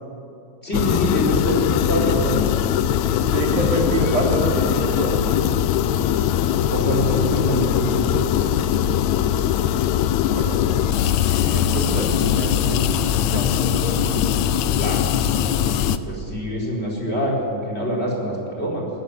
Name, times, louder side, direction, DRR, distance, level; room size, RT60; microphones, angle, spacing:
voice 1, 0.6-2.5 6.7-8.7 14.8-15.5 15.8-18.9, equal, 20° left, -2 dB, 4.4 m, -25 dB
sound 1, 0.7-16.0, left 10 dB, 75° left, 1.9 m, -21 dB
voice 2, 3.2-5.5 10.3-10.6 11.2-14.3, right 2 dB, 80° right, -1 dB, 4.7 m, -27 dB
19.5 x 14.5 x 9.8 m, 2.6 s
omnidirectional pair, 3.5 m